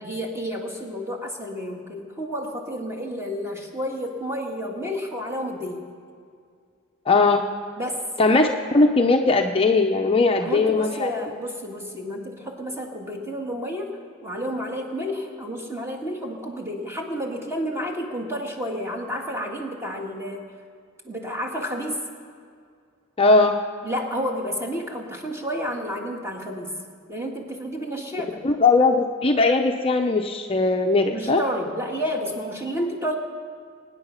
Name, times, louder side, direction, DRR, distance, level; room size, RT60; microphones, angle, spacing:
voice 1, 0.0-5.9 7.8-8.0 8.4-8.5 10.4-14.0 14.2-20.4 21.0-22.0 23.8-26.7 27.1-28.4 31.1-33.1, equal, 15° right, 1 dB, 1.9 m, -30 dB
voice 2, 7.1-7.4 8.2-8.5 8.7-11.1 23.2-23.6 28.4-31.4, left 3 dB, 30° left, 4 dB, 0.7 m, -19 dB
23.5 x 9.7 x 5.7 m, 2.2 s
head